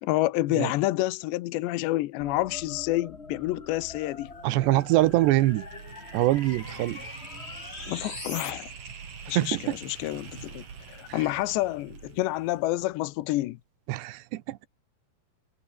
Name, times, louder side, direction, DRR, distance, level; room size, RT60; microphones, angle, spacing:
voice 1, 0.0-4.3 7.9-8.7 9.3-13.6, left 17 dB, 80° left, 3.0 m, -28 dB
sound 1, 2.2-8.5, left 3 dB, 45° left, 0.8 m, -42 dB
sound 2, 4.0-13.2, right 6 dB, 45° right, 5.1 m, -45 dB
voice 2, 4.4-5.7 6.1-7.2 9.3-9.8 11.1-11.2 13.9-14.7, right 17 dB, 75° right, 2.9 m, -24 dB
omnidirectional pair, 5.4 m